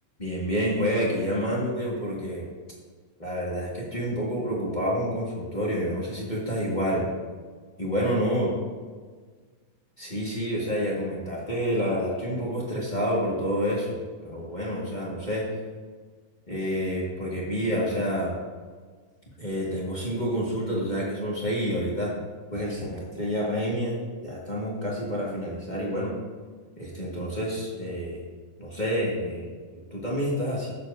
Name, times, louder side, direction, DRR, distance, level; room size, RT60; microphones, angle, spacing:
voice 1, 0.2-2.5 3.2-7.1 7.8-8.5 10.0-15.5 16.5-18.3 19.4-22.1 22.5-26.1 26.8-28.2 28.6-30.7, equal, 40° left, -5 dB, 0.6 m, -28 dB
16.0 x 7.2 x 2.7 m, 1.5 s
omnidirectional pair, 3.9 m